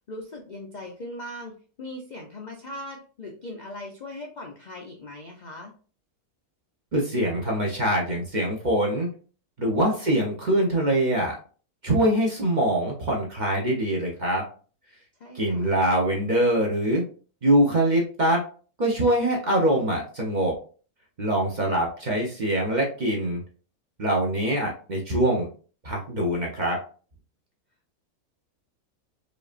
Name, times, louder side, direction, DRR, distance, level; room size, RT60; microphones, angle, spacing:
voice 1, 0.1-5.7 9.8-10.1 15.2-15.7, left 1 dB, 75° left, 0 dB, 0.4 m, -39 dB
voice 2, 6.9-9.1 9.6-11.4 11.8-14.4 15.3-17.0 17.4-18.4 18.8-20.6 21.2-23.4 24.0-25.5 25.8-26.8, right 1 dB, 40° right, -1 dB, 0.7 m, -23 dB
5.0 x 2.6 x 2.5 m, 0.39 s
omnidirectional pair, 1.6 m